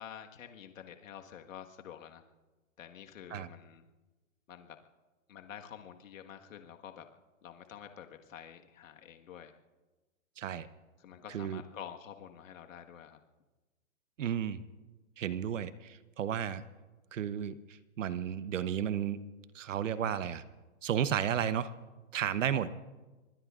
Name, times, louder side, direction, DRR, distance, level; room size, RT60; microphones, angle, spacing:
voice 1, 0.0-2.2 2.8-3.9 4.5-4.8 5.3-7.1 7.4-9.5 11.0-13.2, left 9 dB, 70° left, 5 dB, 1.6 m, -48 dB
voice 2, 10.4-10.7 11.3-11.6 14.2-14.6 15.2-16.6 17.1-17.5 18.0-19.2 19.5-20.4 20.8-21.7 22.1-22.8, right 9 dB, 65° right, 14 dB, 0.9 m, -33 dB
26.5 x 21.5 x 2.5 m, 1.2 s
hypercardioid pair, 165°, 41 cm